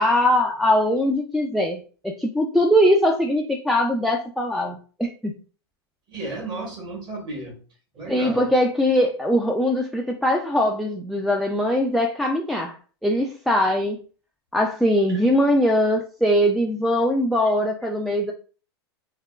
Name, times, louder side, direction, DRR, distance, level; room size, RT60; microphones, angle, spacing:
voice 1, 0.0-5.4 8.1-12.8 13.0-14.0 14.5-18.3, equal, ahead, 2 dB, 0.3 m, -21 dB
voice 2, 6.1-7.6 7.9-8.5 15.1-15.2, right 2 dB, 30° right, 0 dB, 1.5 m, -33 dB
3.4 x 2.3 x 2.3 m, 0.38 s
hypercardioid pair, 110°, 14 cm